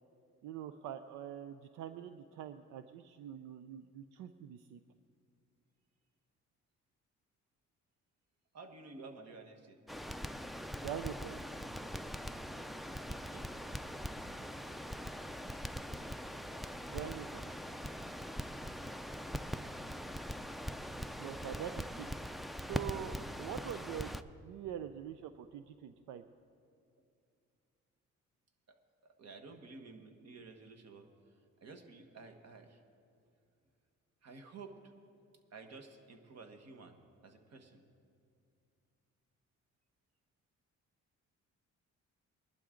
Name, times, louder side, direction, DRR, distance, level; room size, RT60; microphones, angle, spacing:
voice 1, 0.4-4.8 10.8-11.4 16.9-17.5 21.2-22.1 22.6-24.1 24.4-26.2, right 10 dB, 85° right, 9 dB, 0.5 m, -44 dB
voice 2, 8.5-9.8 13.1-13.5 28.7-31.1 31.6-32.8 34.2-34.8 35.5-37.8, right 3 dB, 55° right, 6 dB, 1.4 m, -52 dB
Crackle, 9.9-24.2, equal, ahead, 0.4 m, -42 dB
21.0 x 11.5 x 3.8 m, 2.4 s
cardioid pair, 90°, 30 cm